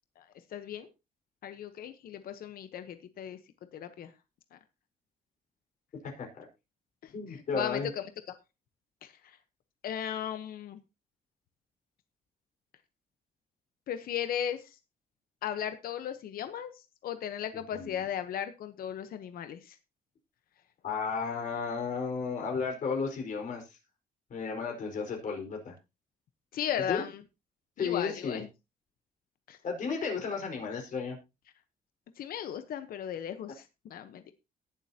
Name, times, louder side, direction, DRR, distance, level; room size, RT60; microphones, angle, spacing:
voice 1, 0.2-0.9 1.4-3.4 3.7-4.1 4.5-4.6 7.0-8.0 9.0-9.4 9.8-10.8 13.9-14.8 15.4-19.8 26.5-27.2 27.8-28.5 29.5-29.6 32.2-34.3, left 9 dB, 75° left, 9 dB, 1.0 m, -36 dB
voice 2, 6.0-6.5 7.1-7.9 17.7-18.0 20.8-23.8 24.3-25.7 26.9-27.0 27.8-28.4 29.6-31.2, left 5 dB, 55° left, 2 dB, 4.8 m, -33 dB
19.0 x 7.6 x 2.9 m, 0.27 s
cardioid pair, 140°, 15 cm